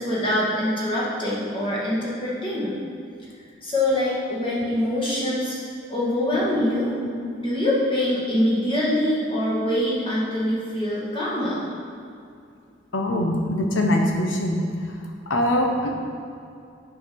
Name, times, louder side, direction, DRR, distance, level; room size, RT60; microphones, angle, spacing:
voice 1, 0.0-2.8 3.6-5.6 5.9-6.9 7.4-11.6, left 1 dB, 25° left, -7 dB, 1.8 m, -24 dB
voice 2, 12.9-14.6 15.3-15.9, left 1 dB, 80° left, 1 dB, 1.1 m, -22 dB
7.7 x 5.2 x 5.4 m, 2.5 s
head